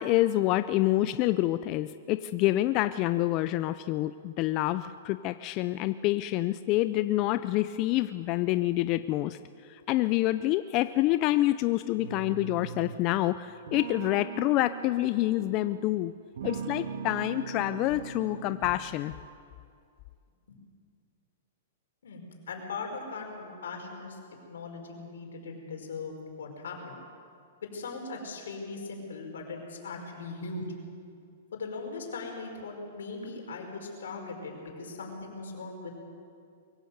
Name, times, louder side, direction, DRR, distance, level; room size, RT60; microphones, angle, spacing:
voice 1, 0.0-9.4 9.7-16.1 16.4-19.1, left 16 dB, 35° left, 12 dB, 0.5 m, -27 dB
sound 1, 12.0-13.1 13.7-15.9 16.3-18.9, right 6 dB, 70° right, 1.8 m, -40 dB
voice 2, 22.0-24.2 24.5-27.0 27.6-30.7 31.5-35.9, left 4 dB, 85° left, 1 dB, 5.4 m, -39 dB
23.0 x 16.0 x 8.0 m, 2.4 s
hypercardioid pair, 150°, 0 cm